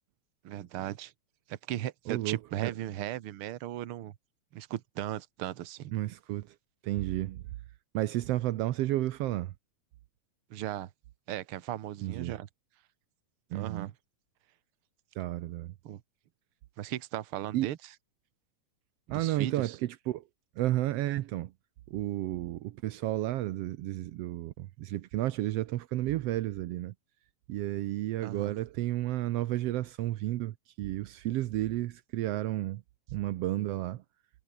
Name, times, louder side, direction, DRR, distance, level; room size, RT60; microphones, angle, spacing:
voice 1, 0.4-1.1 1.5-4.1 4.5-5.9 10.5-10.9 11.3-12.5 13.5-13.9 15.8-16.0 16.8-17.8 19.1-19.7 28.2-28.5, right 13 dB, 65° right, 1.4 m, -37 dB
voice 2, 2.1-2.7 5.9-6.5 6.8-7.4 7.9-9.5 12.0-12.3 13.5-13.9 15.2-15.7 17.5-17.7 19.1-20.2 20.6-21.5 21.9-26.9 27.5-32.8 33.1-34.0, right 15 dB, 85° right, 1.3 m, -32 dB
omnidirectional pair, 3.8 m